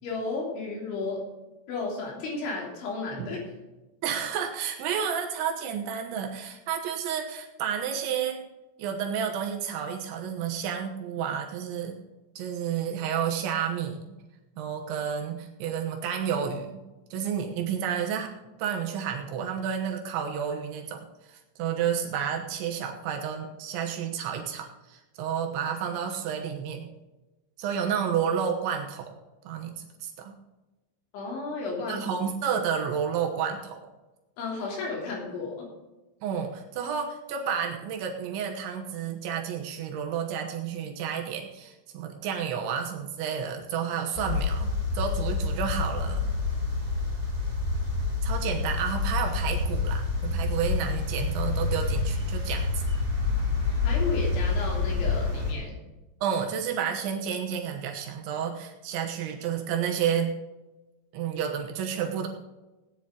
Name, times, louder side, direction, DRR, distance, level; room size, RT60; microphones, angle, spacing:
voice 1, 0.0-1.2 1.7-3.4 31.1-32.1 34.4-35.7 53.8-55.8, left 3 dB, 75° left, -2 dB, 5.6 m, -33 dB
voice 2, 4.0-8.4 8.8-12.0 12.4-14.2 14.6-16.8 17.1-18.3 18.6-26.9 27.6-29.1 29.4-30.4 31.9-33.8 36.2-46.3 48.2-52.7 56.2-60.3 61.1-62.3, right 8 dB, 75° right, 2 dB, 3.4 m, -31 dB
sound 1, 44.2-55.5, left 3 dB, 10° right, 2.9 m, -28 dB
17.5 x 10.0 x 3.9 m, 1.1 s
omnidirectional pair, 5.5 m